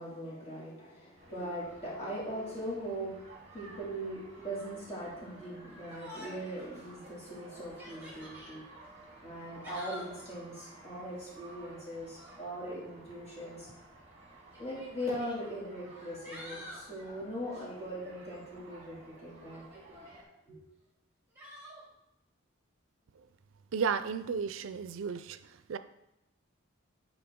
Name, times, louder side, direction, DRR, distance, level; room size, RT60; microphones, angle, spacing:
voice 1, 0.0-3.1 3.5-8.6 9.2-13.7 14.6-20.6, equal, 30° left, -7 dB, 2.5 m, -40 dB
sound 1, 1.2-20.2, right 2 dB, 35° right, 1.2 m, -54 dB
Yell, 5.9-6.6 7.0-7.1 7.6-8.5 9.4-10.2 12.0-12.4 13.6-13.7 14.5-15.4 15.9-16.9 19.5-20.2 21.4-21.8, equal, 10° right, 2.0 m, -48 dB
voice 2, 23.7-25.4 25.7-25.8, right 6 dB, 75° right, 12 dB, 0.4 m, -33 dB
8.6 x 4.1 x 3.6 m, 0.89 s
head